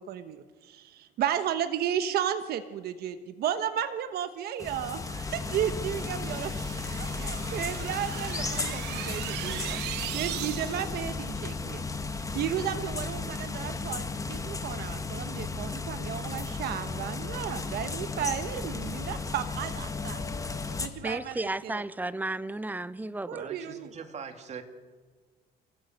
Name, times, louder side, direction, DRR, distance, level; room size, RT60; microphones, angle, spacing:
voice 1, 0.0-6.5 7.2-9.8 10.1-11.8 12.1-20.2 20.8-21.8 23.3-23.9, right 10 dB, 70° right, 1.2 m, -33 dB
sound 1, 4.6-20.9, left 4 dB, 20° left, 1.7 m, -34 dB
sound 2, 5.1-11.0, right 15 dB, 90° right, 0.9 m, -39 dB
sound 3, 13.6-20.8, left 6 dB, 70° left, 6.0 m, -53 dB
voice 2, 21.0-23.5, right 2 dB, 10° right, 0.7 m, -33 dB
voice 3, 23.3-24.6, right 6 dB, 40° right, 2.4 m, -42 dB
28.0 x 15.0 x 7.9 m
cardioid pair, 110°, 17 cm